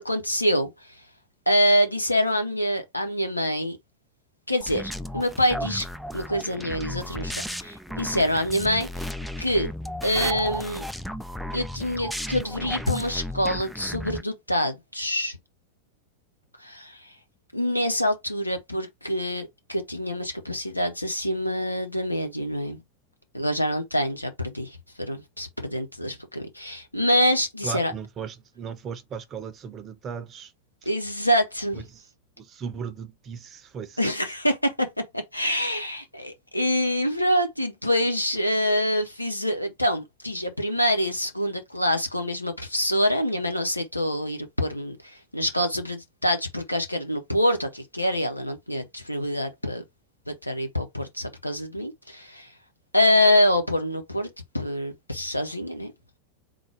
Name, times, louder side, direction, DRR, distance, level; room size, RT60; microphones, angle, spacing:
voice 1, 0.0-0.7 1.5-3.8 4.5-5.9 6.1-8.9 9.4-9.7 10.0-10.9 11.5-15.4 16.6-17.1 17.5-22.8 23.3-27.9 30.9-31.8 34.0-34.9 35.1-49.8 50.3-52.5 52.9-54.3 54.5-55.9, equal, 85° left, 0.9 m, -25 dB
sound 1, 4.6-14.2, equal, ahead, 0.4 m, -34 dB
voice 2, 27.6-30.5 31.7-32.0 32.4-34.0, right 6 dB, 25° right, 0.8 m, -36 dB
3.9 x 2.3 x 4.5 m
figure-of-eight pair, 90°, 0 cm